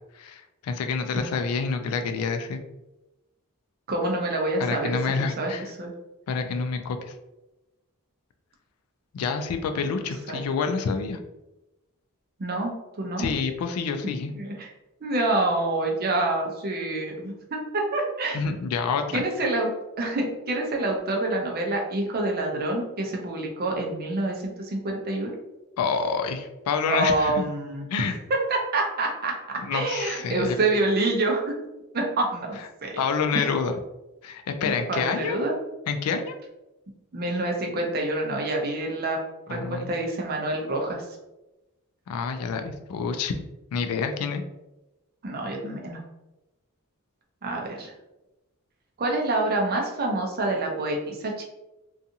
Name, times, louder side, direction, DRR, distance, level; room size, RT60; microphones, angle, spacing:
voice 1, 0.2-2.6 4.6-5.7 6.3-7.1 9.1-11.2 13.2-14.3 18.3-19.2 25.8-27.4 27.9-28.2 29.6-30.6 33.0-33.7 34.2-35.4 35.9-36.3 39.5-39.9 42.1-43.3 43.7-44.4, left 5 dB, 75° left, 7 dB, 0.3 m, -28 dB
voice 2, 3.9-5.0 5.2-5.9 10.3-10.8 12.4-13.3 14.3-14.7 15.0-18.4 19.1-25.3 26.9-31.5 31.9-32.9 33.3-33.5 34.6-35.6 37.1-39.2 39.5-41.1 45.2-46.0 47.4-47.9 49.0-51.4, right 2 dB, 45° right, 1 dB, 0.5 m, -27 dB
2.6 x 2.3 x 2.7 m, 0.99 s
head